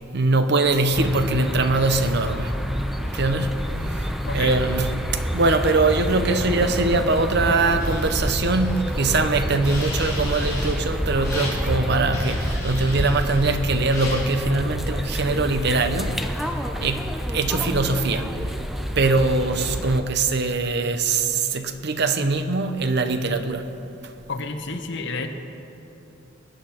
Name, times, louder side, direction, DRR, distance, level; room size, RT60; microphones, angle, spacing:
voice 1, 0.1-2.5 3.1-4.1 4.3-18.3 19.0-23.7, right 3 dB, 60° right, 8 dB, 0.9 m, -22 dB
sound 1, 0.9-20.0, equal, ahead, 0.7 m, -28 dB
voice 2, 4.3-4.6 6.3-6.4 24.3-25.3, left 3 dB, 65° left, 5 dB, 1.1 m, -30 dB
sound 2, 7.8-9.1 9.6-10.8 11.2-11.6 12.1-13.6 13.9-14.2, left 2 dB, 20° left, 4.0 m, -36 dB
22.0 x 9.2 x 4.5 m, 2.9 s
head